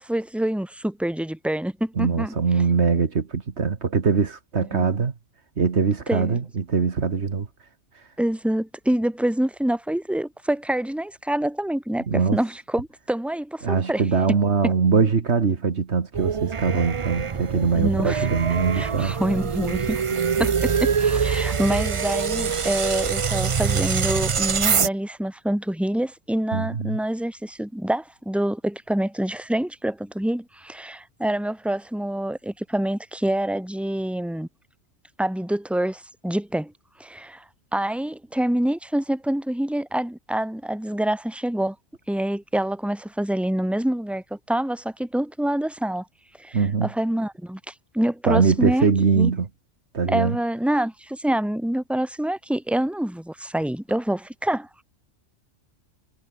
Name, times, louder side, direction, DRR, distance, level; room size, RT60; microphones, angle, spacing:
voice 1, 0.0-2.3 4.7-4.9 6.1-6.4 8.2-14.0 14.3-14.4 14.6-14.7 17.8-18.3 18.7-20.0 20.4-34.5 35.2-36.7 37.0-37.4 37.7-41.8 42.1-46.1 46.4-48.9 49.1-49.3 50.1-54.8, right 1 dB, ahead, 2.4 m, -26 dB
voice 2, 2.0-5.1 5.6-7.5 12.1-12.4 13.6-19.1 20.1-20.5 21.5-21.6 26.5-27.0 46.5-46.9 48.3-49.5 49.9-50.4, right 5 dB, 65° right, 1.8 m, -22 dB
sound 1, 16.1-24.9, right 6 dB, 40° right, 0.5 m, -24 dB
omnidirectional pair, 1.3 m